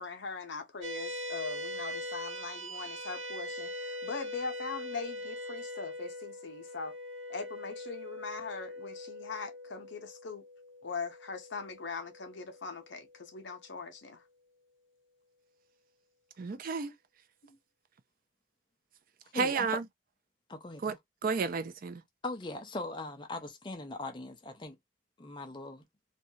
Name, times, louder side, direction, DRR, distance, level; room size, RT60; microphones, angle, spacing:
voice 1, 0.0-6.9 7.3-10.5 10.8-14.2 17.4-17.6, left 4 dB, 60° left, 0.7 m, -41 dB
sound 1, 0.8-13.5, left 1 dB, 85° right, 0.7 m, -42 dB
voice 2, 16.4-16.9 19.3-19.8 20.8-20.9 21.2-22.0, right 4 dB, 45° right, 0.4 m, -31 dB
voice 3, 19.3-19.7 20.5-21.0 22.2-24.8 25.2-25.8, left 2 dB, 25° left, 0.5 m, -40 dB
2.5 x 2.2 x 2.7 m
head